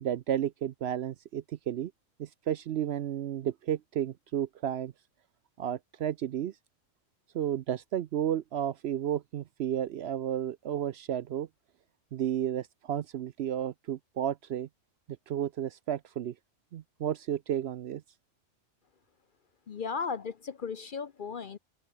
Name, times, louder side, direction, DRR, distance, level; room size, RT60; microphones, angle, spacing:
voice 1, 0.0-1.9 2.2-4.9 5.6-6.5 7.3-11.5 12.1-14.7 15.3-16.3 16.7-18.0, right 10 dB, 65° right, 0.7 m, -32 dB
voice 2, 19.7-21.6, left 5 dB, 50° left, 0.7 m, -36 dB
open air
omnidirectional pair, 1.3 m